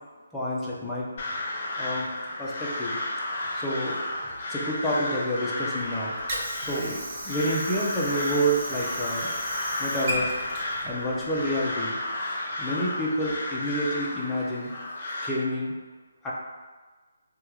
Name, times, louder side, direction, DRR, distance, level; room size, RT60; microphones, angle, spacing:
voice 1, 0.3-1.1 1.8-2.1 2.4-3.0 3.5-4.0 4.5-6.1 6.6-9.3 9.8-10.3 10.8-12.0 12.6-14.7 15.2-15.7 16.2-16.3, equal, 5° left, -7 dB, 0.6 m, -28 dB
Crow, 1.2-15.3, left 1 dB, 40° left, 0.8 m, -33 dB
Water / Sink (filling or washing), 5.8-11.8, right 1 dB, 40° right, 0.7 m, -36 dB
3.3 x 2.3 x 3.0 m, 1.4 s
hypercardioid pair, 155°, 0 cm